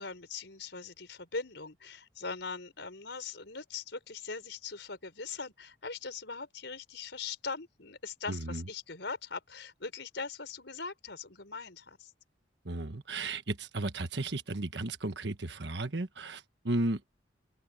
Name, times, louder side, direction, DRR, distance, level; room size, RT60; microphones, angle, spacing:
voice 1, 0.0-12.1, left 4 dB, 75° left, 4.4 m, -41 dB
voice 2, 8.3-8.6 12.6-17.0, right 2 dB, 70° right, 1.4 m, -34 dB
open air
head